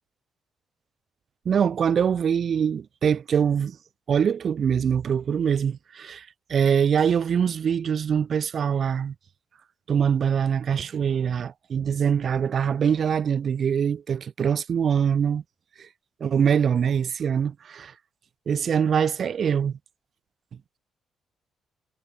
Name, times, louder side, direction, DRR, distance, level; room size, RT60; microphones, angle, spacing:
voice 1, 1.5-3.8 4.1-9.1 9.9-15.4 15.8-15.9 16.2-17.9 18.5-19.8, right 7 dB, 55° right, 0.4 m, -23 dB
cardioid pair, 90°, 0 cm